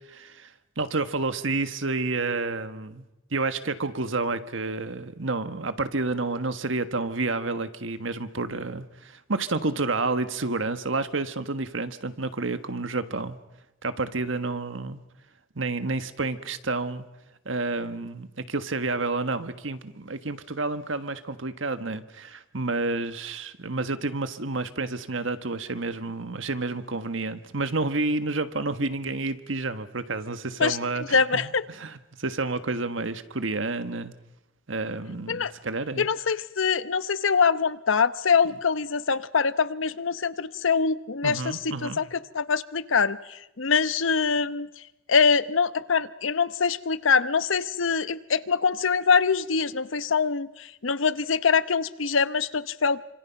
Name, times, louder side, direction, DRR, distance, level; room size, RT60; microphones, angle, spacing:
voice 1, 0.1-0.5 0.8-3.0 3.3-13.4 13.8-15.0 15.5-17.0 17.4-34.1 34.7-36.1 41.2-42.0, right 3 dB, 75° right, 10 dB, 1.5 m, -30 dB
voice 2, 31.1-31.6 35.3-35.5 36.0-44.7 45.1-53.0, left 5 dB, 80° left, 14 dB, 0.9 m, -24 dB
28.0 x 26.0 x 5.9 m, 0.96 s
head